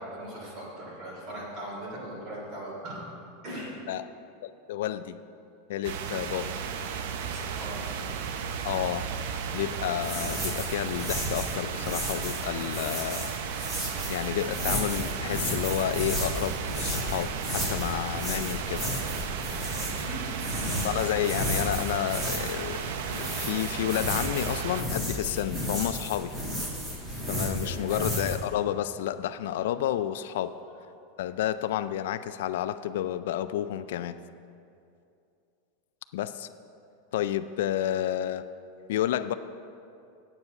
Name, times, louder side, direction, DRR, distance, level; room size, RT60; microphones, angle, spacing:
voice 1, 0.0-3.1 3.4-3.7 7.2-8.0 19.9-20.3 27.6-28.0 30.2-30.4 30.6-30.7, right 1 dB, 35° right, -4 dB, 2.8 m, -40 dB
voice 2, 4.4-5.2 5.7-6.5 8.6-9.1 9.5-13.3 14.1-18.9 20.8-26.4 27.3-30.5 31.2-34.2 36.1-36.5 37.1-38.5 38.9-39.3, left 11 dB, 70° left, 11 dB, 0.3 m, -30 dB
sound 1, 5.8-24.8, right 7 dB, 60° right, 0.7 m, -34 dB
sound 2, 10.0-28.4, equal, 20° right, 1.9 m, -33 dB
9.5 x 8.0 x 5.8 m, 2.5 s
supercardioid pair, 170°, 0 cm